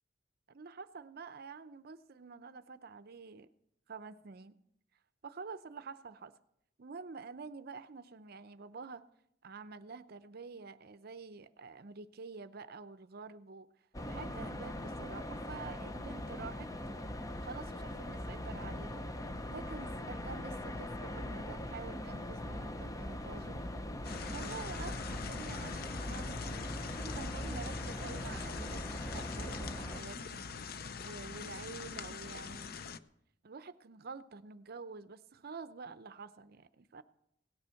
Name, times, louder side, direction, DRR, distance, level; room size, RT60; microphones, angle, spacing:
voice 1, 0.5-3.5 3.9-4.6 5.2-6.3 6.8-9.1 9.4-13.7 14.1-16.7 17.4-19.1 19.5-23.6 24.3-26.7 27.0-30.5 31.0-32.8 33.4-37.0, right 4 dB, 55° right, 12 dB, 0.6 m, -48 dB
sound 1, 13.9-30.0, left 1 dB, 20° left, 0.7 m, -41 dB
sound 2, 24.0-33.0, left 5 dB, 55° left, 0.6 m, -44 dB
17.5 x 9.7 x 5.7 m, 0.76 s
head